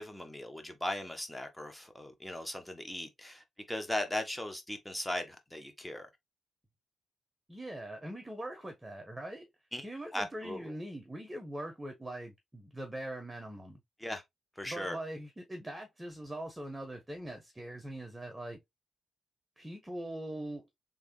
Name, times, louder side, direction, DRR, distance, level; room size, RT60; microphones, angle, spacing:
voice 1, 0.0-6.1 9.7-9.8 10.1-10.7 14.0-14.2 14.6-15.0, left 1 dB, 10° left, 1.3 m, -38 dB
voice 2, 7.5-9.4 9.8-13.8 14.6-18.6 19.6-20.7, right 1 dB, 15° right, 1.2 m, -42 dB
3.5 x 3.0 x 3.1 m
hypercardioid pair, 45°, 0 cm